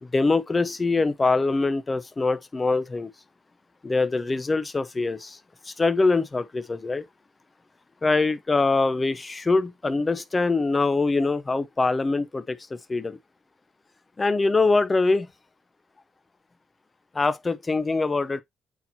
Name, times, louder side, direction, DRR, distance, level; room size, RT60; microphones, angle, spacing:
voice 1, 0.0-3.1 3.8-5.4 5.6-7.0 8.0-13.2 14.2-15.3 17.1-18.4, left 3 dB, 25° left, 0.9 m, -23 dB
8.3 x 4.5 x 2.8 m
cardioid pair, 90°, 0 cm